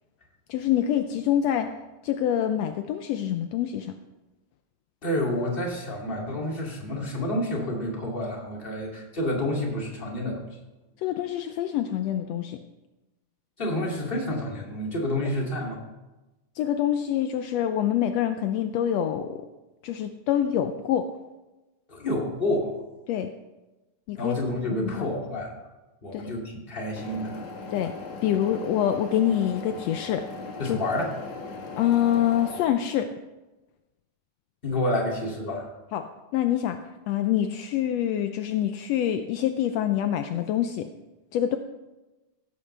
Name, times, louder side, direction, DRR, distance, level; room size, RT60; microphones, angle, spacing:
voice 1, 0.5-1.7 2.0-3.9 11.0-12.6 16.6-19.4 19.8-21.1 23.1-23.3 24.1-24.3 24.8-25.1 26.1-26.3 27.7-27.9 28.2-30.3 30.7-30.8 31.8-33.1 35.9-36.1 36.3-36.8 37.1-40.9 41.3-41.6, left 10 dB, 85° left, 7 dB, 1.5 m, -25 dB
voice 2, 5.0-10.4 13.6-15.8 21.9-22.7 24.2-25.5 26.0-27.4 30.6-31.1 34.6-35.7, left 1 dB, 20° left, -2 dB, 2.4 m, -29 dB
sound 1, 26.9-32.7, left 4 dB, 65° left, 2.7 m, -39 dB
16.5 x 14.0 x 3.3 m, 1.1 s
omnidirectional pair, 3.7 m